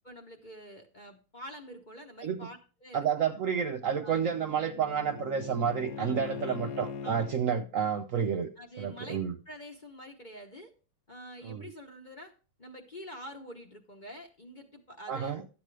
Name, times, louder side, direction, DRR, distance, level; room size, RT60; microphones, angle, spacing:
voice 1, 0.0-3.1 4.0-4.3 6.0-6.7 7.0-7.2 8.6-10.7 11.1-12.3 12.6-15.4, equal, 30° left, 1.0 m, -47 dB
voice 2, 2.9-8.5 8.8-9.4 11.4-11.6 15.1-15.4, right 7 dB, 65° right, 0.9 m, -30 dB
Bowed string instrument, 3.4-7.4, left 6 dB, 65° left, 0.9 m, -41 dB
12.0 x 8.3 x 3.3 m
omnidirectional pair, 2.0 m